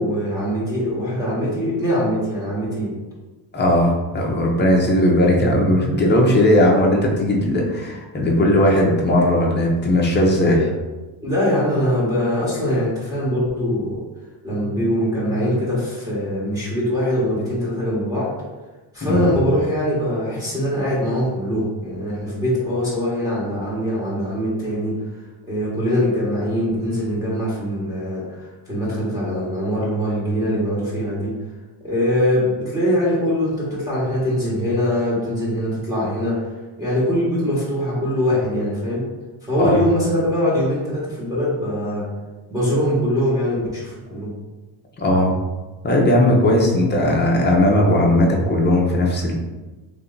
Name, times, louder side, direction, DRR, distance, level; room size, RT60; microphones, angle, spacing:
voice 1, 0.0-2.9 4.3-4.5 4.9-5.0 10.4-10.7 11.2-14.0 14.4-18.3 18.9-24.9 25.5-31.3 31.8-36.4 36.8-39.0 39.4-42.1 42.5-44.3, equal, 10° right, -8 dB, 1.4 m, -22 dB
voice 2, 3.5-10.6 19.0-19.2 39.6-39.9 45.0-45.4 45.8-49.3, left 1 dB, 20° left, -2 dB, 0.9 m, -17 dB
3.4 x 2.8 x 3.9 m, 1.2 s
cardioid pair, 110°, 47 cm